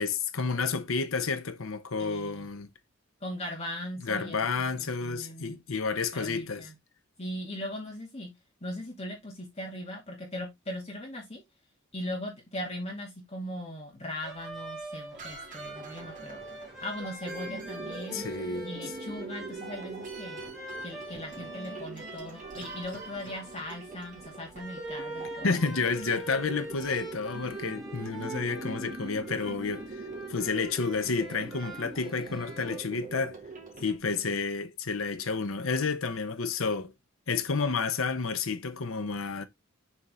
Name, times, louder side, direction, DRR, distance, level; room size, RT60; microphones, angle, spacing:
voice 1, 0.0-2.7 4.0-6.7 18.1-18.7 25.4-29.9 30.3-33.4 33.8-36.9 37.3-39.4, left 4 dB, 85° left, 0.9 m, -30 dB
voice 2, 2.0-2.5 3.2-4.7 5.0-5.6 6.1-6.7 7.2-8.3 8.6-11.4 11.9-16.4 16.8-18.3 18.6-20.4 20.8-25.5, left 1 dB, 30° left, 2.5 m, -39 dB
sound 1, 14.2-32.8, right 1 dB, ahead, 2.9 m, -44 dB
sound 2, 15.1-34.0, right 3 dB, 40° right, 2.6 m, -43 dB
7.2 x 4.4 x 3.6 m
head